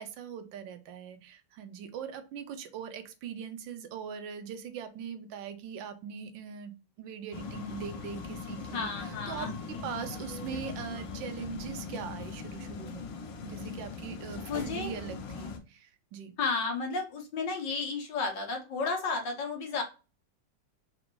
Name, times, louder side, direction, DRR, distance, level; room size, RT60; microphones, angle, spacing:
voice 1, 0.0-13.1 13.4-16.3, right 7 dB, 90° right, 9 dB, 1.3 m, -41 dB
sound 1, 7.3-15.6, left 4 dB, 90° left, 1.5 m, -40 dB
voice 2, 8.7-9.9 14.5-14.9 16.4-19.8, left 4 dB, 70° left, 2 dB, 1.6 m, -33 dB
4.1 x 2.5 x 2.9 m, 0.30 s
omnidirectional pair, 2.0 m